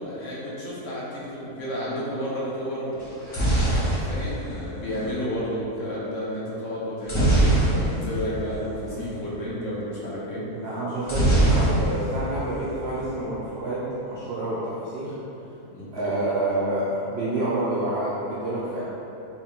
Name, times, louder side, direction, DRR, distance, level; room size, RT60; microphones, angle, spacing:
voice 1, 0.0-3.2 4.1-10.5 15.7-16.3, equal, 60° left, -7 dB, 1.0 m, -31 dB
sound 1, 3.0-5.1 7.0-8.2 8.5-8.6 8.9-9.1 11.0-12.2 12.5-13.1, right 1 dB, 45° left, 0.4 m, -22 dB
voice 2, 10.5-15.1 15.9-18.8, right 1 dB, 80° right, -7 dB, 0.5 m, -28 dB
3.6 x 2.4 x 2.9 m, 3.0 s
omnidirectional pair, 1.6 m